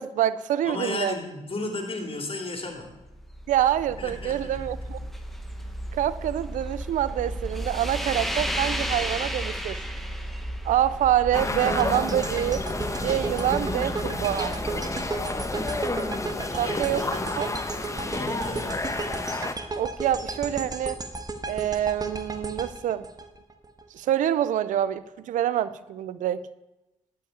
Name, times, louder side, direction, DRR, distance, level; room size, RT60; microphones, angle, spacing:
voice 1, 0.0-1.1 3.5-5.0 5.9-9.9 10.6-12.7 12.9-14.6 16.6-17.0 17.4-17.5 19.8-21.0 21.5-23.1 23.9-26.5, right 11 dB, 85° right, 0.4 m, -26 dB
voice 2, 0.6-2.9 4.0-4.6 16.4-17.6 17.9-18.8, left 2 dB, 45° left, 2.8 m, -34 dB
sound 1, 2.9-17.1, equal, ahead, 1.4 m, -34 dB
sound 2, 11.3-19.5, left 2 dB, 25° left, 1.2 m, -31 dB
sound 3, 11.6-23.8, right 3 dB, 30° right, 1.4 m, -34 dB
11.0 x 5.8 x 8.3 m
supercardioid pair, 50°, 13 cm